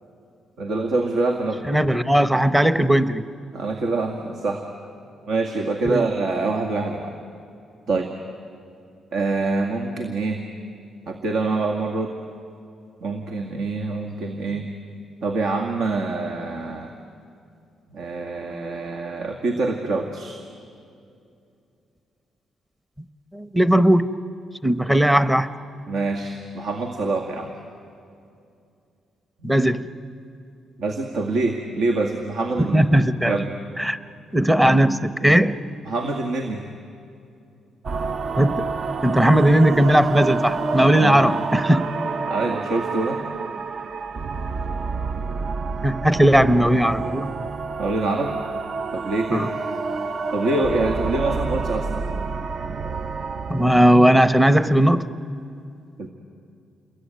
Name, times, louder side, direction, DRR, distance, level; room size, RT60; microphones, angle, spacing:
voice 1, 0.6-1.6 3.5-4.7 5.3-7.2 7.9-8.1 9.1-10.4 11.1-12.1 13.0-14.7 15.2-16.9 17.9-20.4 25.9-27.5 29.4-29.5 30.8-32.8 33.2-33.5 35.9-36.7 41.0-41.2 42.3-43.2 47.8-48.4 48.9-49.5 50.3-52.0 56.0-56.1, right 3 dB, 75° right, 3 dB, 2.0 m, -25 dB
voice 2, 1.7-3.2 5.8-6.0 23.3-24.1 24.6-25.5 29.4-29.9 32.6-33.4 33.8-34.0 34.3-35.6 38.4-38.7 39.0-41.9 45.8-47.3 49.3-49.5 53.5-55.1, right 1 dB, 5° right, 11 dB, 0.9 m, -17 dB
sound 1, 37.8-54.0, right 4 dB, 45° right, 0.6 m, -28 dB
28.5 x 22.0 x 9.3 m, 2.5 s
cardioid pair, 125°, 0 cm